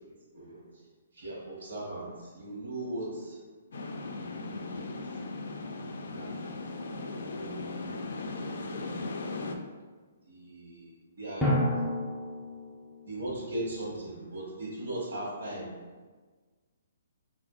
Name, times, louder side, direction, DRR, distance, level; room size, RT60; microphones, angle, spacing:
voice 1, 1.1-3.4 4.1-4.9 5.6-5.7 6.1-6.3 7.3-8.1 8.4-9.1 10.3-11.5 13.0-15.8, right 1 dB, 80° right, -5 dB, 1.2 m, -39 dB
sound 1, 3.7-9.6, left 3 dB, 75° left, 0.3 m, -37 dB
Drum, 11.4-13.2, left 1 dB, 5° left, 0.5 m, -30 dB
3.4 x 2.5 x 2.4 m, 1.4 s
hypercardioid pair, 150°, 0 cm